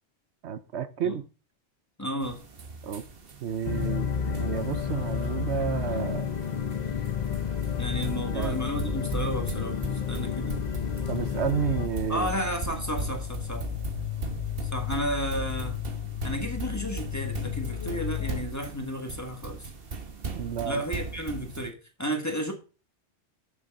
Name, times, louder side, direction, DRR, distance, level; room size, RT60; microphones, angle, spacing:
voice 1, 0.4-1.2 2.8-3.0 3.4-6.3 8.3-8.6 11.1-12.3 20.3-20.8, right 8 dB, 75° right, 1.0 m, -31 dB
voice 2, 2.0-2.5 7.8-10.6 12.1-13.7 14.6-15.8 16.2-19.7 20.6-22.5, equal, 15° left, 1.5 m, -33 dB
sound 1, 2.2-21.7, right 4 dB, 55° right, 1.3 m, -39 dB
sound 2, 3.6-11.9, left 6 dB, 45° left, 0.8 m, -31 dB
sound 3, 6.4-18.4, left 10 dB, 70° left, 1.3 m, -35 dB
7.3 x 6.6 x 5.3 m
omnidirectional pair, 1.2 m